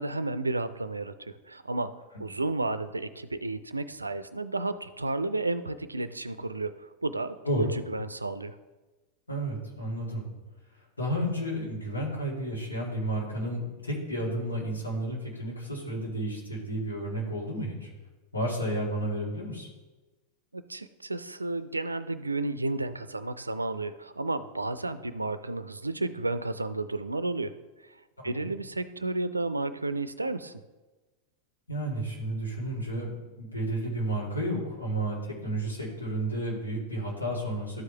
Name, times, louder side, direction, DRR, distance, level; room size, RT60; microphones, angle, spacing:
voice 1, 0.0-8.6 20.5-27.5 28.2-30.6, right 2 dB, 80° right, 13 dB, 0.4 m, -32 dB
voice 2, 9.3-10.2 11.0-17.9 18.3-19.7 28.2-28.5 31.7-33.1 33.4-37.8, right 1 dB, 80° left, -4 dB, 2.3 m, -32 dB
12.5 x 4.8 x 3.2 m, 1.2 s
figure-of-eight pair, 90°, 0 cm